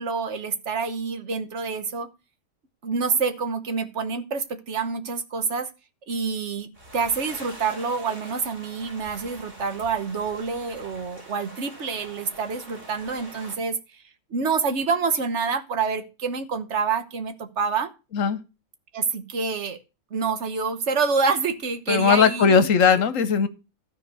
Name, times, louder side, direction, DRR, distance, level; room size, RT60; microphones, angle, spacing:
voice 1, 0.0-2.1 2.8-5.7 6.1-14.0 14.3-17.9 18.9-19.8 20.1-22.7, right 5 dB, 55° right, 10 dB, 1.4 m, -27 dB
sound 1, 6.7-13.6, right 1 dB, 40° right, 3.7 m, -44 dB
voice 2, 21.9-23.5, left 6 dB, 65° left, 13 dB, 1.3 m, -18 dB
13.0 x 4.6 x 6.8 m, 0.30 s
omnidirectional pair, 1.5 m